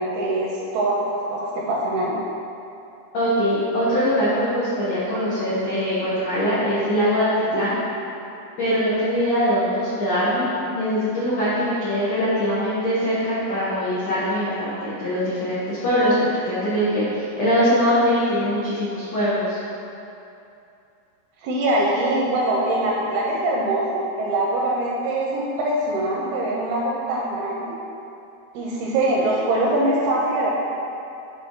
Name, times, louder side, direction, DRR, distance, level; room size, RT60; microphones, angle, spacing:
voice 1, 0.0-2.2 21.4-27.8 28.5-30.5, right 1 dB, 80° right, -3 dB, 2.3 m, -23 dB
voice 2, 3.1-7.7 8.6-19.6, equal, 90° left, -11 dB, 1.4 m, -22 dB
8.2 x 4.6 x 3.7 m, 2.7 s
omnidirectional pair, 5.0 m